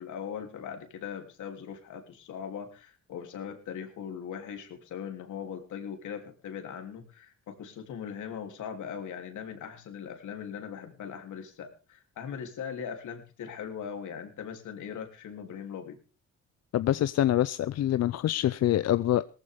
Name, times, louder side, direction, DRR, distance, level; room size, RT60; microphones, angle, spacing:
voice 1, 0.0-16.0, left 7 dB, 75° left, 3.3 m, -40 dB
voice 2, 16.7-19.3, left 12 dB, 55° left, 0.6 m, -25 dB
18.0 x 14.5 x 3.6 m
cardioid pair, 90°, 30 cm